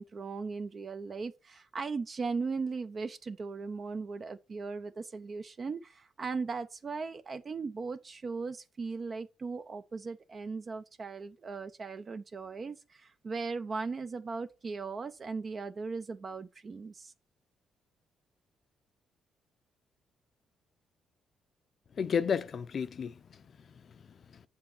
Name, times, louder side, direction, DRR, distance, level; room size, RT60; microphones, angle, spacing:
voice 1, 0.0-17.1, right 4 dB, 40° right, 0.6 m, -38 dB
voice 2, 21.9-24.4, left 6 dB, 50° left, 0.6 m, -34 dB
7.4 x 4.8 x 5.9 m
cardioid pair, 90°, 0 cm